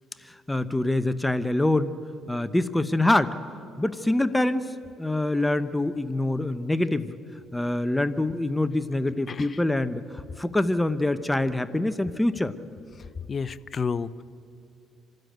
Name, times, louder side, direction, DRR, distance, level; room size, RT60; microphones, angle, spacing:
voice 1, 0.2-1.9 2.3-3.4 3.8-7.2 7.5-12.6, left 1 dB, 10° left, 13 dB, 0.8 m, -25 dB
voice 2, 13.3-14.2, left 5 dB, 40° left, 17 dB, 0.6 m, -30 dB
27.0 x 13.0 x 9.2 m, 2.5 s
supercardioid pair, 85°, 0 cm